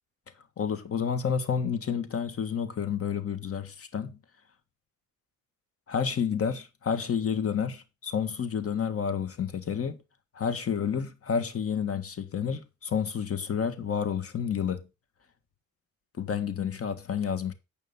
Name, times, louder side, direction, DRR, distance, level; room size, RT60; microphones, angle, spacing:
voice 1, 0.6-4.1 5.9-10.0 10.3-14.8 16.2-17.5, left 7 dB, 50° left, 1.7 m, -30 dB
9.5 x 5.3 x 5.5 m
cardioid pair, 90°, 30 cm